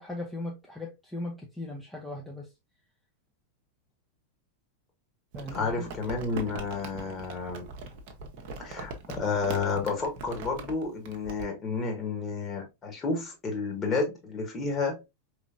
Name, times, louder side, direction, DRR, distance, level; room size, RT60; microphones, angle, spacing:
voice 1, 0.0-2.5 5.3-5.9, left 2 dB, 5° left, 0.8 m, -38 dB
Crumpling crinkling, 5.3-11.4, right 3 dB, 45° right, 0.9 m, -41 dB
voice 2, 5.5-7.7 8.6-15.0, left 4 dB, 25° left, 1.6 m, -31 dB
4.9 x 3.3 x 2.5 m
figure-of-eight pair, 90°, 0 cm